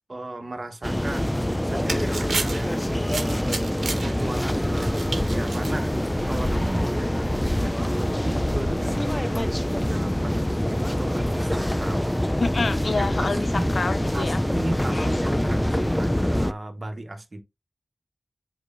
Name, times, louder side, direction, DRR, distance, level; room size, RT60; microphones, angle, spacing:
voice 1, 0.1-2.7 3.2-9.5 9.8-12.2 13.0-13.7 14.1-17.4, right 2 dB, 50° right, 1.4 m, -36 dB
sound 1, 0.8-16.5, equal, 10° left, 0.5 m, -25 dB
sound 2, 1.4-6.6, right 3 dB, 85° right, 1.3 m, -34 dB
voice 2, 12.4-14.4 14.9-15.1, left 3 dB, 70° left, 0.7 m, -27 dB
8.2 x 4.8 x 2.7 m
cardioid pair, 50°, 0 cm